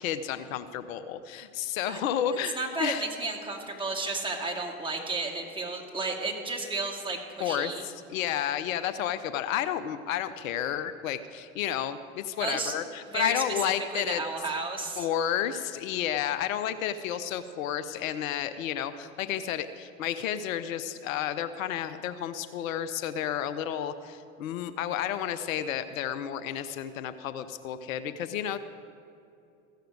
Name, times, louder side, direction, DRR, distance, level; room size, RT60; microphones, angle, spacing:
voice 1, 0.0-3.0 7.4-14.2 15.0-28.6, left 10 dB, 70° left, 11 dB, 0.7 m, -31 dB
voice 2, 2.6-7.8 12.4-12.7 13.1-15.1, right 3 dB, 10° right, -1 dB, 2.3 m, -32 dB
15.0 x 6.7 x 7.8 m, 2.6 s
hypercardioid pair, 85°, 43 cm